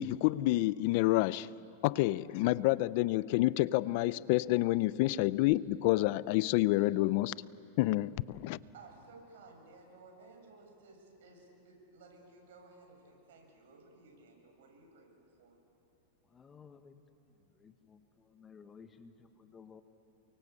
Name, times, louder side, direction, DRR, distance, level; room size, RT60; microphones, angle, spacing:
voice 1, 0.0-1.5 1.8-7.4 7.8-8.6, left 17 dB, 50° left, 0.5 m, -28 dB
voice 2, 8.7-15.1 15.4-15.6, right 3 dB, 75° right, 7.6 m, -57 dB
voice 3, 16.2-17.0 17.5-19.8, left 6 dB, 20° left, 1.2 m, -56 dB
29.0 x 24.0 x 8.4 m
supercardioid pair, 145°, 0 cm